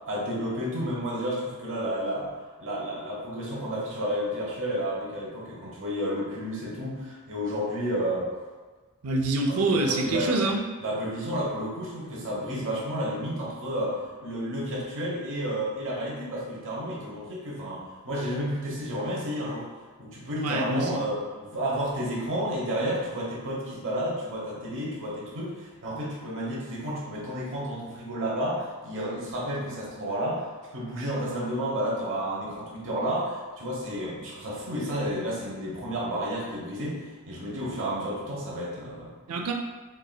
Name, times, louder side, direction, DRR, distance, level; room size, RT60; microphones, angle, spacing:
voice 1, 0.1-2.3 2.6-8.3 9.5-10.5 10.8-19.7 20.0-39.1, equal, 60° right, -5 dB, 1.0 m, -31 dB
voice 2, 9.0-10.6 20.4-21.0 39.3-39.5, right 2 dB, 85° right, 2 dB, 0.6 m, -26 dB
4.6 x 3.3 x 2.3 m, 1.3 s
head